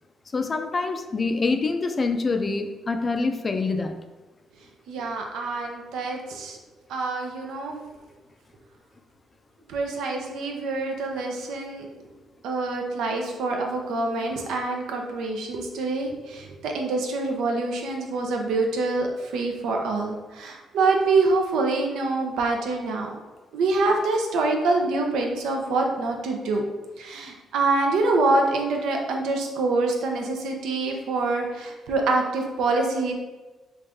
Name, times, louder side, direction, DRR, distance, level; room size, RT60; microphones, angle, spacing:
voice 1, 0.3-4.0, left 3 dB, 35° left, 7 dB, 0.3 m, -25 dB
voice 2, 4.9-6.6 6.9-7.8 9.7-11.9 12.4-23.1 23.5-26.6 27.0-33.1, right 3 dB, 85° right, 2 dB, 0.5 m, -25 dB
3.2 x 2.5 x 3.5 m, 1.2 s
cardioid pair, 90°, 0 cm